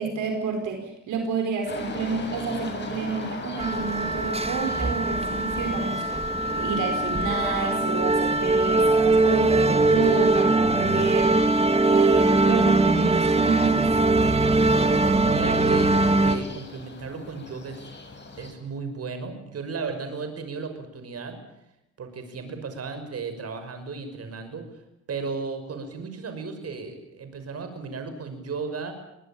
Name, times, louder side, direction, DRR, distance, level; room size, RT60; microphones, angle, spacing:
voice 1, 0.0-11.6 11.9-13.9, right 5 dB, 80° right, 4 dB, 4.8 m, -29 dB
sound 1, 1.7-18.5, left 3 dB, 35° left, 7.1 m, -40 dB
sound 2, 3.6-16.4, right 2 dB, 20° right, 2.5 m, -21 dB
voice 2, 14.8-17.9 18.4-21.4 22.0-24.7 25.1-28.9, right 4 dB, 55° right, 8 dB, 6.1 m, -35 dB
23.5 x 21.0 x 8.8 m, 0.85 s
cardioid pair, 90°, 30 cm